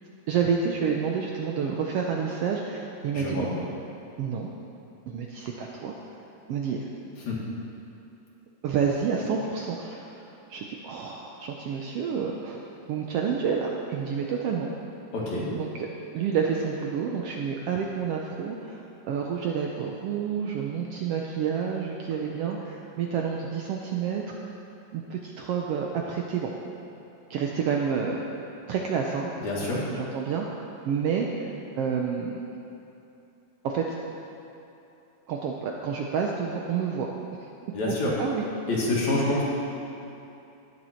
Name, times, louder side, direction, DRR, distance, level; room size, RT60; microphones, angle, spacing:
voice 1, 0.3-3.5 4.2-4.5 5.1-6.0 6.5-6.9 8.6-12.6 12.9-14.7 15.5-15.9 16.1-24.4 24.9-26.5 27.3-28.2 28.7-29.3 29.9-32.4 33.6-34.0 35.3-37.1 37.4-37.5 37.9-38.5 39.2-39.3, right 6 dB, 75° right, 0 dB, 1.4 m, -29 dB
voice 2, 3.1-3.5 7.3-7.4 15.1-15.5 29.4-29.8 37.7-38.1 38.7-39.4, left 2 dB, 70° left, -5 dB, 3.4 m, -27 dB
18.5 x 7.2 x 4.4 m, 2.9 s
omnidirectional pair, 3.4 m